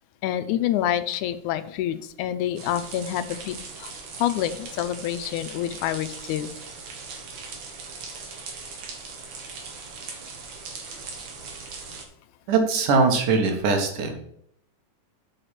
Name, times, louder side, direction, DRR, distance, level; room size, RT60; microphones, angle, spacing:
voice 1, 0.2-6.5, left 11 dB, 80° left, 12 dB, 2.0 m, -27 dB
sound 1, 2.6-12.1, right 4 dB, 65° right, 2.8 m, -39 dB
voice 2, 12.5-14.1, right 4 dB, 85° right, 4 dB, 3.1 m, -21 dB
7.9 x 5.0 x 5.9 m, 0.71 s
omnidirectional pair, 3.6 m